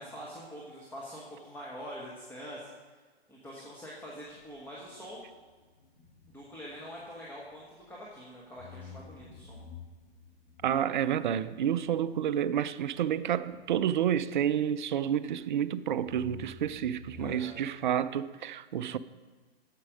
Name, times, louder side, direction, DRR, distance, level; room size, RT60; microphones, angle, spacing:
voice 1, 0.0-2.7 3.3-5.2 6.3-9.6 17.1-17.6, equal, 5° left, 1.2 m, -44 dB
sound 1, 3.9-8.2 8.6-15.6 16.0-17.3, left 6 dB, 55° left, 2.6 m, -52 dB
voice 2, 10.6-19.0, right 9 dB, 50° right, 0.4 m, -29 dB
8.6 x 7.5 x 5.2 m
hypercardioid pair, 125°, 32 cm